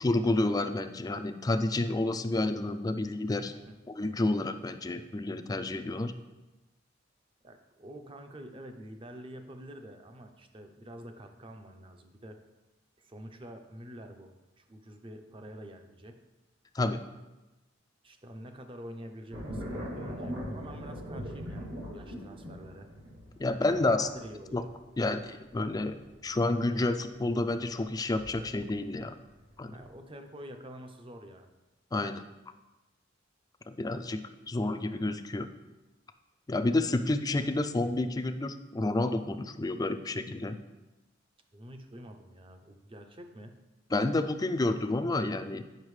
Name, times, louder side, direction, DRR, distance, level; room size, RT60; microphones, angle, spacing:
voice 1, 0.0-3.5 3.9-6.1 16.7-17.0 23.4-24.1 24.5-24.6 25.0-26.0 26.2-29.1 29.6-29.7 31.9-32.2 33.7-34.2 34.5-35.5 36.5-40.6 43.9-45.6, left 2 dB, 20° left, 9 dB, 0.4 m, -29 dB
voice 2, 7.4-12.4 13.0-16.2 18.0-22.9 23.6-24.7 29.7-31.5 37.4-37.7 41.5-43.6, right 1 dB, 25° right, 6 dB, 0.6 m, -47 dB
sound 1, 19.3-28.9 29.4-29.9, equal, 75° right, 2.2 m, -41 dB
8.8 x 5.7 x 3.2 m, 1.1 s
head